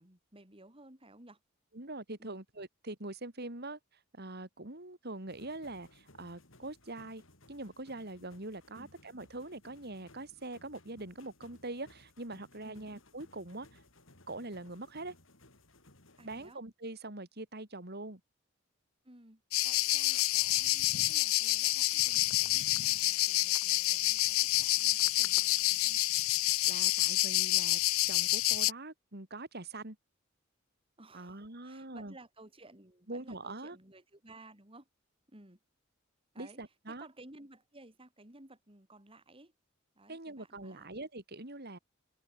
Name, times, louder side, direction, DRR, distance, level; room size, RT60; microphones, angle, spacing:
voice 1, 0.0-1.4 2.2-2.4 8.7-8.9 12.6-12.9 16.2-16.6 19.0-26.0 31.0-34.9 35.3-35.6 36.3-36.6 36.9-39.5 39.9-40.9, right 2 dB, 25° right, 4.5 m, -56 dB
voice 2, 1.7-3.8 4.1-7.2 7.5-13.8 14.3-15.1 16.2-18.2 26.6-27.8 28.1-30.0 31.1-32.1 33.1-33.8 36.4-37.1 40.1-41.8, right 2 dB, 50° right, 3.9 m, -43 dB
sound 1, 5.3-16.5, left 2 dB, 70° left, 5.8 m, -61 dB
sound 2, 19.5-28.7, left 17 dB, 85° left, 0.5 m, -28 dB
head